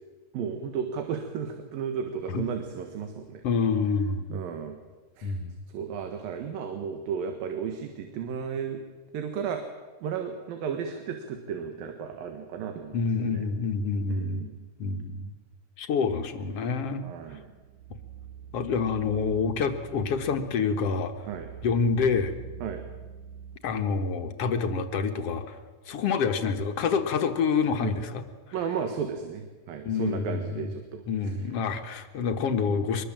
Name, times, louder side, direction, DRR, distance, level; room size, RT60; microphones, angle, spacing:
voice 1, 0.3-3.4 4.3-4.8 5.2-5.4 5.7-8.8 9.1-9.6 10.0-13.4 14.1-14.6 17.0-17.5 21.3-21.5 22.6-22.8 27.8-27.9 28.5-31.0, right 7 dB, 85° right, 6 dB, 3.4 m, -34 dB
voice 2, 3.4-4.4 5.2-5.5 12.9-14.5 14.8-15.3 15.8-17.0 18.5-21.1 21.6-22.3 23.6-25.6 25.9-28.2 29.9-30.7 31.1-33.0, left 5 dB, 55° left, 7 dB, 1.9 m, -27 dB
sound 1, 17.2-23.6, right 8 dB, 70° right, 2.3 m, -45 dB
24.0 x 21.5 x 7.5 m, 1.3 s
omnidirectional pair, 4.0 m